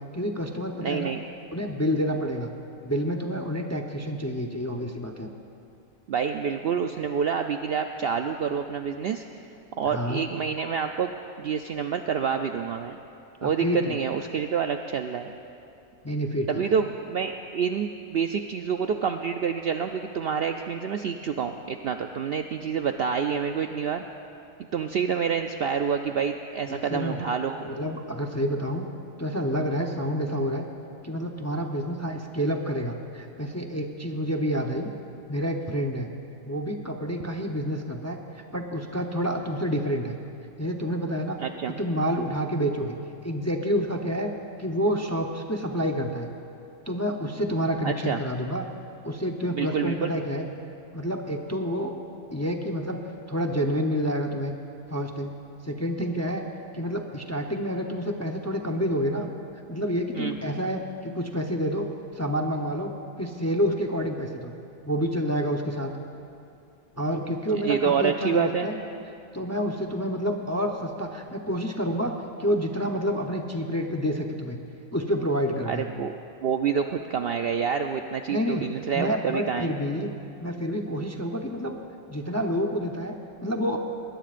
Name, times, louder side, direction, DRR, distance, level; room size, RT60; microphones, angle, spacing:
voice 1, 0.1-1.1 1.5-2.5 2.8-5.3 9.8-10.2 13.4-14.0 16.0-16.7 26.7-27.2 27.6-28.9 29.2-30.7 31.0-34.9 35.3-36.1 36.4-40.2 40.6-41.4 41.7-43.0 43.2-44.3 44.6-46.3 46.9-48.6 49.0-50.5 50.9-51.9 52.3-53.0 53.3-54.5 54.9-55.3 55.6-56.4 56.7-59.3 59.7-61.9 62.1-64.5 64.8-65.9 67.0-68.8 69.3-72.1 72.4-74.6 74.9-75.8 78.3-78.6 78.9-80.1 80.4-81.8 82.1-83.8, equal, 15° left, 2 dB, 0.6 m, -28 dB
voice 2, 0.8-1.2 6.1-9.2 9.8-11.1 11.4-13.0 13.4-15.3 16.5-24.0 24.7-27.8 41.4-41.8 47.8-48.2 49.5-50.1 60.1-60.4 67.5-68.7 75.6-76.1 76.4-79.7, right 7 dB, 65° right, 5 dB, 0.6 m, -27 dB
21.0 x 20.5 x 2.5 m, 2.6 s
omnidirectional pair, 1.4 m